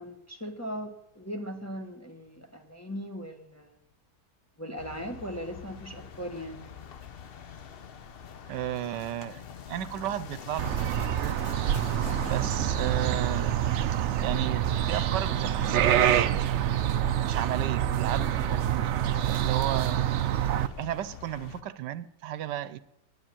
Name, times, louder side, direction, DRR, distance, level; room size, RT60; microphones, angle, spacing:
voice 1, 0.0-3.8 4.6-6.7 12.4-12.7, equal, 10° left, 2 dB, 1.2 m, -39 dB
sound 1, 4.8-21.6, left 7 dB, 55° left, 0.6 m, -44 dB
voice 2, 8.5-9.4 9.7-10.7 11.2-11.3 12.2-13.6 14.2-16.9 17.2-18.9 19.2-20.1 20.4-22.8, right 12 dB, 85° right, 15 dB, 1.3 m, -34 dB
sound 2, 10.6-20.7, right 11 dB, 70° right, 0.6 m, -26 dB
10.0 x 9.9 x 9.0 m, 0.83 s
omnidirectional pair, 1.8 m